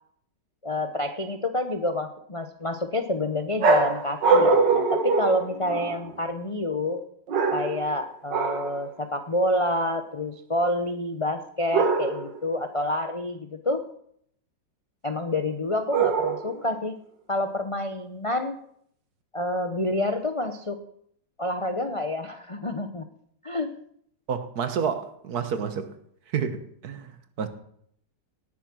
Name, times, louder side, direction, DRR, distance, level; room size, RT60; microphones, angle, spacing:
voice 1, 0.6-7.0 7.5-13.8 15.0-17.0 17.3-18.6 19.3-20.8 21.4-23.0 23.4-23.7, left 1 dB, 35° left, 0.5 m, -28 dB
sound 1, 3.6-6.1 7.3-7.9 8.3-8.8 11.7-12.4 15.9-16.7, right 4 dB, 75° right, 2.1 m, -23 dB
voice 2, 24.3-25.9 26.3-27.5, right 6 dB, 60° right, 1.5 m, -30 dB
18.5 x 7.4 x 6.1 m
omnidirectional pair, 1.9 m